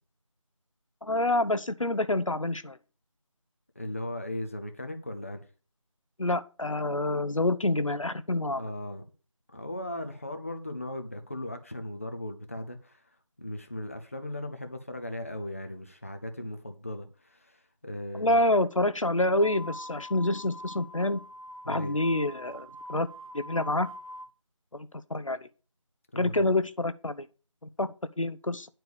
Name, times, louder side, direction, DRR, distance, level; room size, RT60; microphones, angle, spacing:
voice 1, 1.0-2.8 6.2-8.6 18.1-21.2 21.7-23.1 23.3-23.9 24.7-25.4 26.1-27.3 27.8-28.7, left 2 dB, 75° left, 0.9 m, -27 dB
voice 2, 3.7-5.5 8.6-9.0 9.5-13.0 13.4-18.5 21.6-22.0 26.1-26.5, left 1 dB, 25° left, 0.7 m, -37 dB
sound 1, 19.3-24.3, equal, 85° right, 1.0 m, -43 dB
9.9 x 4.5 x 6.9 m
figure-of-eight pair, 170°, 17 cm